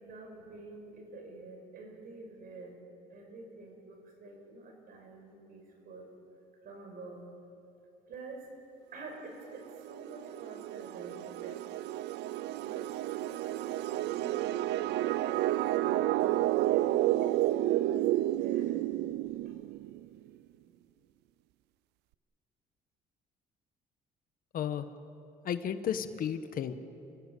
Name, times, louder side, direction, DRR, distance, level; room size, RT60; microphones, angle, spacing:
voice 1, 0.0-2.8 3.1-6.1 6.6-7.3 8.1-8.5 8.9-11.6 12.6-14.8 15.8-18.8 19.4-19.5, right 3 dB, 60° right, 3 dB, 5.8 m, -48 dB
sound 1, 9.5-20.0, right 15 dB, 80° right, 0.5 m, -31 dB
voice 2, 24.5-24.9 25.4-26.7, left 9 dB, 55° left, 10 dB, 1.3 m, -33 dB
29.5 x 16.5 x 8.4 m, 2.8 s
cardioid pair, 110°, 17 cm